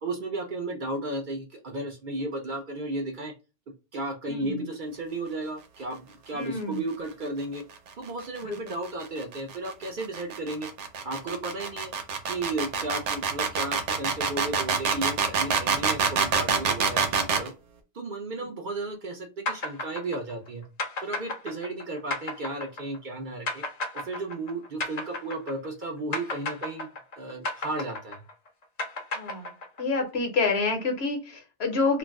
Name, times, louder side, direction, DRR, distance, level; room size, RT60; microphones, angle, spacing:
voice 1, 0.0-3.3 3.9-7.6 7.9-10.7 11.0-11.9 12.3-17.5 17.9-20.6 21.0-23.6 23.9-26.9 27.2-28.2, right 2 dB, 55° right, 2 dB, 0.6 m, -34 dB
voice 2, 4.3-4.6 6.3-6.8 8.5-8.6 29.1-29.5 29.8-32.0, left 3 dB, 65° left, 4 dB, 1.0 m, -28 dB
sound 1, 8.2-17.5, right 6 dB, 85° right, 1.0 m, -26 dB
sound 2, 19.5-25.8 26.1-30.0, left 2 dB, 45° left, 0.6 m, -33 dB
2.5 x 2.1 x 3.4 m, 0.30 s
omnidirectional pair, 1.2 m